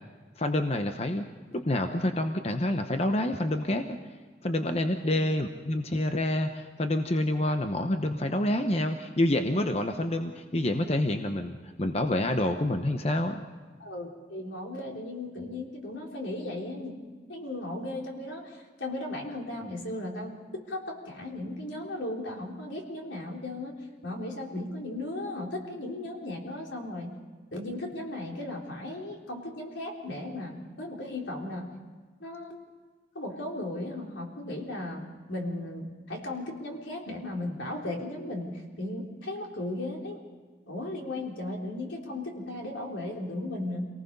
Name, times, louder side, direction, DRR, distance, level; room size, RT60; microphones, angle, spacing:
voice 1, 0.4-1.3 1.5-4.0 4.4-13.4, left 1 dB, 35° left, 6 dB, 0.9 m, -28 dB
voice 2, 13.8-17.0 17.3-20.3 20.7-23.7 24.0-27.1 27.5-31.7 32.2-32.6 33.2-40.2 40.7-43.9, left 1 dB, 85° left, 0 dB, 3.7 m, -36 dB
27.0 x 19.0 x 5.5 m, 1.5 s
head